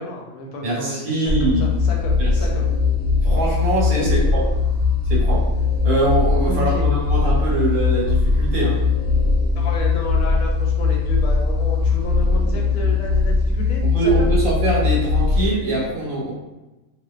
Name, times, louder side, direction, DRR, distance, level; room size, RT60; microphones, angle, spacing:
voice 1, 0.0-2.6 3.9-4.3 6.4-6.9 9.5-14.3, left 1 dB, 80° left, -1 dB, 1.0 m, -31 dB
voice 2, 0.6-1.6 2.2-2.3 3.2-4.4 5.0-5.5 5.8-8.8 13.9-16.3, right 2 dB, 75° right, -5 dB, 1.3 m, -23 dB
sound 1, 1.3-15.5, left 4 dB, 60° left, 0.9 m, -20 dB
2.5 x 2.3 x 2.3 m, 1.1 s
omnidirectional pair, 1.5 m